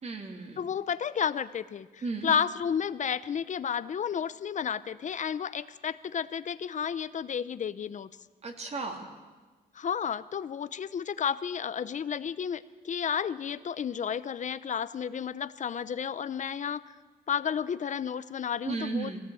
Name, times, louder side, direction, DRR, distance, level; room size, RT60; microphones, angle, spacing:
voice 1, 0.0-0.6 2.0-2.3 8.4-9.1 18.6-19.2, right 4 dB, 40° right, 3 dB, 3.0 m, -34 dB
voice 2, 0.6-8.1 9.7-16.9 17.3-19.2, left 7 dB, 50° left, 15 dB, 0.7 m, -32 dB
21.5 x 17.5 x 8.5 m, 1.3 s
cardioid pair, 125°, 16 cm